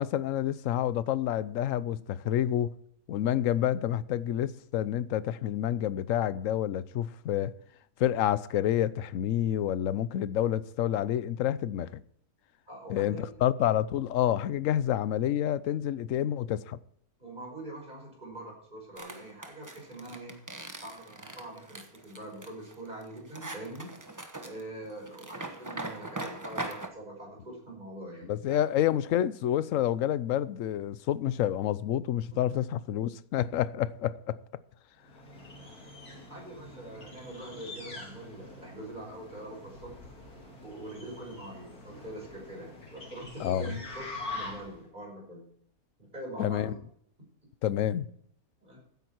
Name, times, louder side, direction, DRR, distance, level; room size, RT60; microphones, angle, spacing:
voice 1, 0.0-2.7 3.1-7.5 8.0-12.0 12.9-16.8 28.3-34.4 43.4-43.7 46.4-46.7 47.6-48.1, left 11 dB, 65° left, 1.0 m, -28 dB
voice 2, 12.7-13.3 17.2-20.4 20.8-23.9 24.4-28.6 36.3-39.9 40.6-45.5 46.0-46.8 48.6-48.8, right 1 dB, 30° right, 5.7 m, -44 dB
sound 1, 19.0-26.9, right 2 dB, 15° right, 0.9 m, -41 dB
sound 2, 35.0-44.9, left 2 dB, 80° left, 3.4 m, -45 dB
15.5 x 9.3 x 4.4 m
omnidirectional pair, 1.6 m